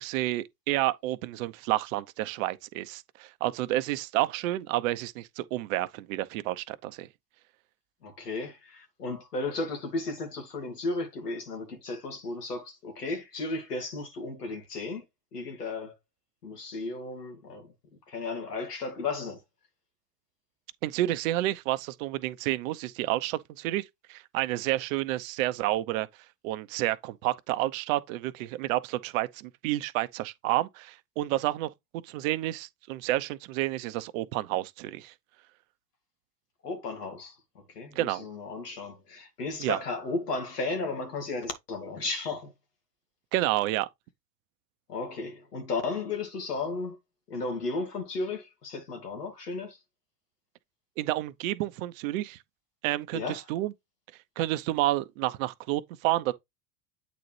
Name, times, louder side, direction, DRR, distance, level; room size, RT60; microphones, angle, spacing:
voice 1, 0.0-7.1 20.8-26.1 26.4-31.7 32.0-35.1 38.0-38.3 39.6-39.8 43.3-43.9 51.0-52.4 52.8-53.7 54.4-56.3, right 16 dB, 60° right, 0.8 m, -30 dB
voice 2, 8.0-15.0 15.3-15.9 16.4-17.7 18.1-19.4 36.6-37.3 37.7-42.5 44.9-47.0 47.3-49.8 53.1-53.4, left 3 dB, 90° left, 2.4 m, -34 dB
8.5 x 4.0 x 3.2 m
hypercardioid pair, 90°, 46 cm